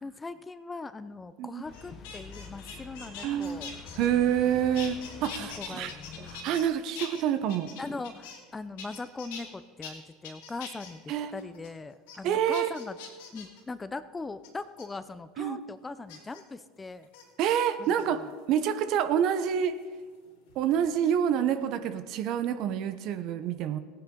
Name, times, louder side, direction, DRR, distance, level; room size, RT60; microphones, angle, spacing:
voice 1, 0.0-3.7 5.4-5.9 7.8-11.0 11.3-13.0 13.3-17.1 17.8-17.9, left 3 dB, 20° left, 13 dB, 0.6 m, -40 dB
sound 1, 1.6-6.7, left 6 dB, 40° left, 0.9 m, -47 dB
sound 2, 1.7-4.5 4.7-6.7 6.9-8.5 8.8-9.4 9.8-9.9 10.2-10.9 11.4-11.7 12.1-12.2 12.5-13.6 14.4-14.8 16.1-16.4 17.0-17.2 17.8-18.4 19.8-21.0 21.3-21.7, left 6 dB, 75° left, 2.8 m, -44 dB
voice 2, 3.2-3.6 4.0-5.9 6.2-7.7 11.1-11.3 12.2-12.7 15.4-15.6 17.4-18.2 18.5-19.8 20.5-23.8, right 9 dB, 60° right, 11 dB, 0.9 m, -27 dB
17.0 x 9.8 x 3.9 m, 1.5 s
hypercardioid pair, 85°, 0 cm